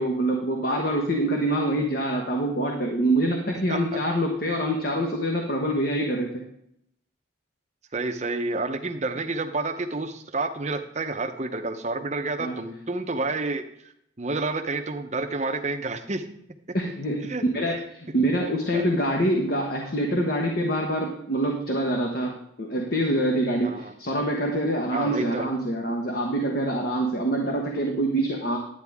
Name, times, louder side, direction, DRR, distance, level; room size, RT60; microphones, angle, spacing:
voice 1, 0.0-6.5 12.4-12.6 16.7-28.6, right 1 dB, 50° left, 1 dB, 1.3 m, -25 dB
voice 2, 7.9-13.6 14.2-16.2 17.3-17.4 18.5-18.9 23.6-23.9 24.9-25.5, right 3 dB, 35° right, 6 dB, 0.8 m, -29 dB
11.0 x 9.3 x 3.6 m, 0.74 s
head